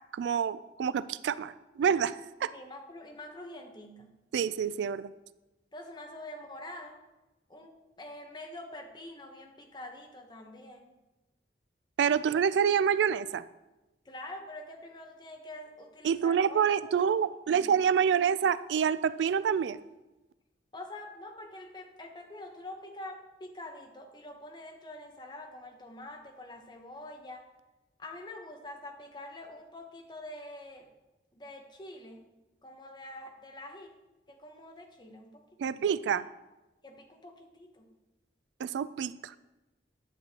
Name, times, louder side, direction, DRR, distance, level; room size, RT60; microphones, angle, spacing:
voice 1, 0.1-2.5 4.3-5.1 12.0-13.5 16.0-19.8 35.6-36.3 38.6-39.3, right 7 dB, 90° right, 16 dB, 0.3 m, -27 dB
voice 2, 2.5-4.1 5.7-7.0 7.5-10.9 14.0-16.9 17.5-17.6 20.7-27.5 28.0-30.9 31.3-32.2 32.6-33.9 34.3-35.8 36.8-37.9, left 1 dB, 25° left, 3 dB, 0.9 m, -46 dB
9.9 x 7.7 x 2.9 m, 1.1 s
head